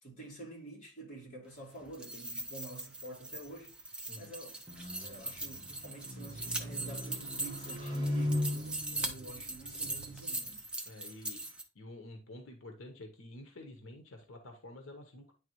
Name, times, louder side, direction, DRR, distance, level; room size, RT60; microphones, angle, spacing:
voice 1, 0.0-4.6 5.0-10.6, right 2 dB, 35° left, 3.3 m, -49 dB
sound 1, 1.8-11.6, right 2 dB, 5° right, 0.7 m, -41 dB
sound 2, 4.7-10.2, left 1 dB, 25° right, 1.2 m, -38 dB
voice 2, 10.8-15.3, left 1 dB, 90° left, 1.0 m, -50 dB
9.8 x 3.4 x 3.0 m
head